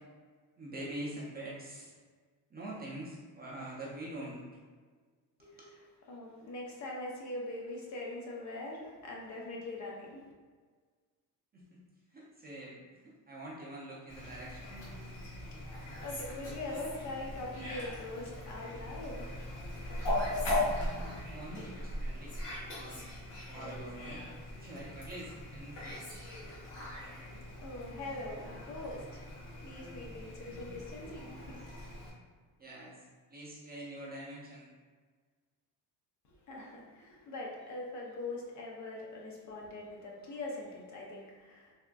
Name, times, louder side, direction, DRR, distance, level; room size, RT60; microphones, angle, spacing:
voice 1, 0.6-1.9 2.5-4.4 5.4-5.7 11.5-11.8 12.1-14.8 20.6-22.3 22.6-23.0 23.5-24.2 24.6-26.2 32.6-34.8, right 1 dB, 20° right, -5 dB, 0.4 m, -45 dB
voice 2, 6.1-10.2 15.5-19.3 27.5-29.3 29.6-31.6 36.5-41.7, left 2 dB, 40° left, -2 dB, 0.5 m, -42 dB
Fowl, 14.1-32.1, left 1 dB, 85° left, 1.4 m, -39 dB
3.4 x 2.4 x 2.2 m, 1.5 s
cardioid pair, 140°, 44 cm